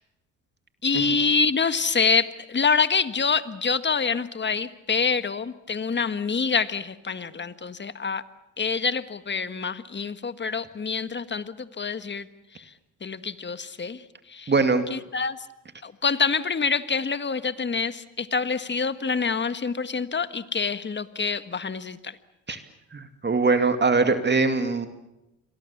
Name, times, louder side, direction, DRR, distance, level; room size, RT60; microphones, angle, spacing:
voice 1, 0.8-8.2 8.6-12.3 12.5-12.7 13.0-14.5 14.9-15.4 15.8-22.2, left 5 dB, 30° left, 12 dB, 1.6 m, -26 dB
voice 2, 14.5-14.8 22.5-22.6 22.9-24.9, right 4 dB, 30° right, 8 dB, 2.5 m, -22 dB
28.5 x 23.0 x 7.3 m, 0.93 s
supercardioid pair, 75°, 35 cm